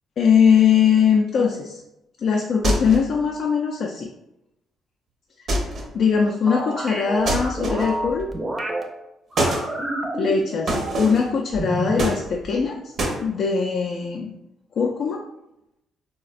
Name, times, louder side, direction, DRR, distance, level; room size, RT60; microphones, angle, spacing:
voice 1, 0.2-1.8 2.2-4.1 5.9-8.3 10.2-12.9 13.2-14.3 14.8-15.2, left 6 dB, 60° left, 1 dB, 0.3 m, -21 dB
sound 1, 2.6-3.2 5.5-6.0 7.2-8.1 9.4-9.7 10.7-11.3 12.0-12.6 13.0-13.2, right 1 dB, 60° right, 0.6 m, -25 dB
sound 2, 6.5-8.8 9.3-11.2 11.5-12.1, right 1 dB, 20° right, 0.5 m, -29 dB
3.9 x 2.1 x 2.4 m, 0.88 s
cardioid pair, 90°, 0 cm